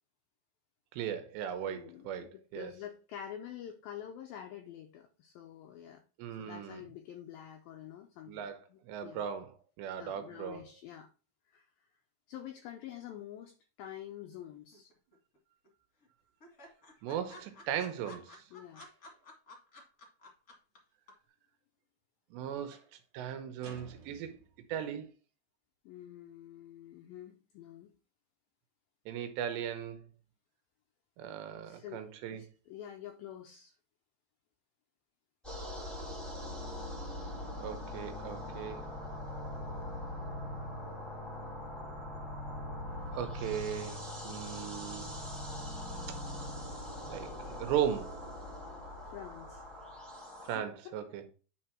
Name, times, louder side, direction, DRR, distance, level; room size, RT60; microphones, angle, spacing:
voice 1, 0.9-2.7 6.2-6.8 8.3-10.7 17.0-18.4 22.3-22.8 23.1-24.4 24.7-25.1 29.1-30.0 31.2-32.5 37.6-38.8 43.1-44.0 44.2-45.1 46.1-46.2 47.0-48.3 50.5-51.3, right 9 dB, 80° right, 3.1 m, -37 dB
voice 2, 1.7-6.0 6.4-9.3 10.0-11.1 11.5-11.7 12.3-14.9 18.5-18.9 25.9-27.9 31.7-32.0 32.3-33.8 49.0-49.6 50.6-51.0, left 10 dB, 90° left, 2.0 m, -47 dB
sound 1, 14.7-15.4 15.6-15.7 16.0-16.1 16.4-20.8 21.1-21.2, left 2 dB, 30° left, 1.6 m, -52 dB
sound 2, 18.8-19.4 22.7-23.0 23.6-24.7, right 4 dB, 55° right, 1.9 m, -56 dB
sound 3, 35.4-50.6, left 1 dB, ahead, 1.2 m, -41 dB
10.0 x 4.3 x 4.4 m
omnidirectional pair, 5.1 m